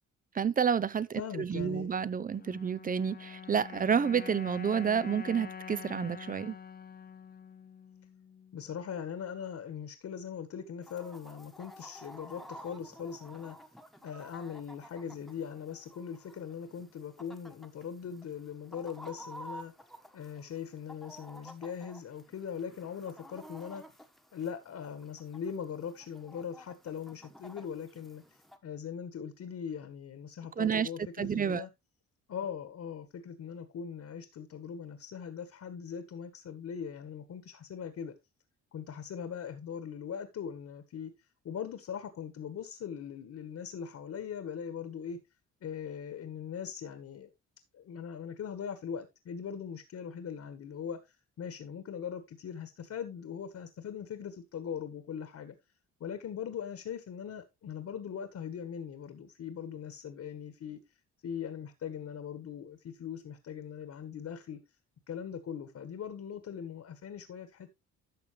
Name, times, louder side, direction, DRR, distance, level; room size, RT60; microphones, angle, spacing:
voice 1, 0.3-6.6 30.6-30.9 31.2-31.6, right 7 dB, 30° right, 0.6 m, -30 dB
voice 2, 1.2-1.9 8.5-13.5 14.0-19.7 20.1-23.8 24.3-28.2 28.6-31.7 32.3-38.1 38.7-41.1 41.4-45.2 45.6-47.3 47.7-55.5 56.0-60.8 61.2-64.6 65.1-67.7, left 7 dB, 60° left, 1.6 m, -40 dB
sound 1, 2.3-8.7, left 7 dB, 30° left, 0.8 m, -46 dB
Chicken rooster, 10.8-28.6, equal, ahead, 1.3 m, -52 dB
12.0 x 6.7 x 3.2 m
cardioid pair, 90°, 30 cm